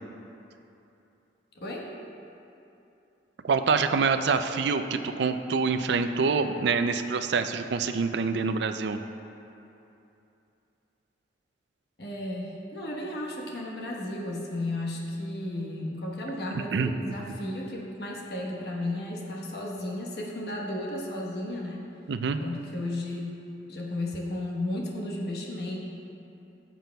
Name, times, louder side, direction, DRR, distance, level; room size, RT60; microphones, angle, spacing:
voice 1, 1.5-1.9 12.0-21.8 22.4-23.3 23.7-25.8, left 1 dB, 60° left, -2 dB, 1.2 m, -34 dB
voice 2, 3.4-9.0 16.7-16.9 22.1-22.4, right 4 dB, 70° right, 9 dB, 0.4 m, -26 dB
14.0 x 7.5 x 2.3 m, 2.8 s
head